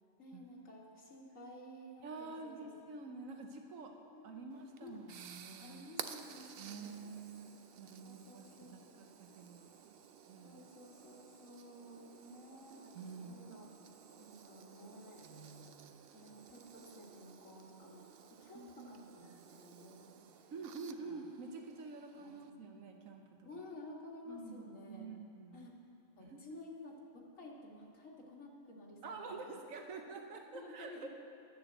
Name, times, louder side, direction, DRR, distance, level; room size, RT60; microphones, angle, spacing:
voice 1, 0.2-2.7 4.1-4.4 4.8-5.1 5.6-7.1 8.0-8.8 10.4-13.7 14.2-15.2 16.1-20.5 21.1-21.2 22.2-22.7 23.4-25.1 25.5-25.7 26.2-27.0 27.4-29.4 30.5-31.1, left 1 dB, 80° left, -2 dB, 2.1 m, -53 dB
voice 2, 2.0-3.9 4.2-5.8 6.4-9.9 10.3-10.6 12.9-13.5 15.2-16.3 18.5-19.0 20.5-23.5 24.3-25.7 26.2-26.6 29.0-31.1, right 4 dB, 80° right, 3 dB, 1.3 m, -48 dB
sound 1, 4.5-22.5, right 8 dB, 60° right, 0.7 m, -54 dB
12.0 x 6.8 x 7.8 m, 2.4 s
omnidirectional pair, 1.4 m